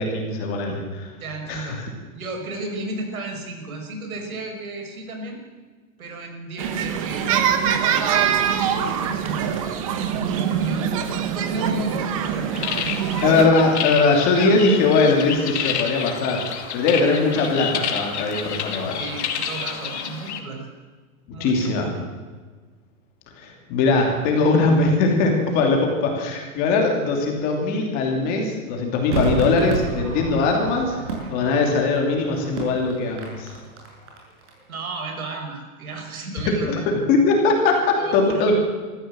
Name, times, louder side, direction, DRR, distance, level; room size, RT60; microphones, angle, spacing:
voice 1, 0.0-1.1 1.5-1.8 13.2-16.4 16.7-19.0 21.3-21.9 23.4-30.9 31.3-33.5 36.4-38.6, left 3 dB, 20° left, 2 dB, 2.8 m, -20 dB
voice 2, 1.2-1.8 2.1-5.4 6.0-9.5 10.3-10.9 11.3-12.5 12.8-13.5 19.0-20.7 21.3-21.9 31.2-31.4 34.7-36.8 38.0-38.4, right 2 dB, 70° right, 3 dB, 5.7 m, -34 dB
sound 1, 6.6-13.5, right 8 dB, 25° right, 1.1 m, -23 dB
sound 2, 12.5-20.4, left 7 dB, 50° left, 2.5 m, -29 dB
Crowd / Fireworks, 29.1-34.5 34.8-34.9, right 4 dB, 55° right, 6.6 m, -30 dB
23.5 x 14.5 x 7.7 m, 1.4 s
hypercardioid pair, 180°, 44 cm